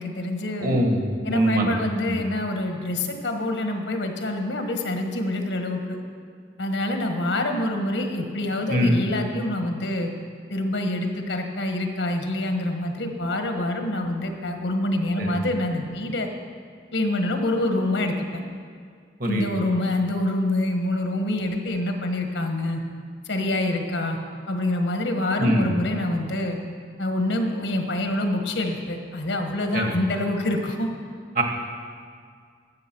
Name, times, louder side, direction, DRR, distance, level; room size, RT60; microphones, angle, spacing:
voice 1, 0.0-0.8 1.2-6.0 6.6-10.1 10.5-16.3 16.9-18.4 19.2-22.8 23.3-24.2 24.5-26.6 27.0-30.9, left 1 dB, 80° left, 4 dB, 1.3 m, -26 dB
voice 2, 0.6-1.8 2.1-2.2 8.7-9.0 15.2-15.3 19.2-19.5 25.4-25.6 29.7-29.9 31.3-31.4, equal, 45° right, 2 dB, 1.7 m, -23 dB
13.0 x 8.0 x 6.1 m, 2.1 s
head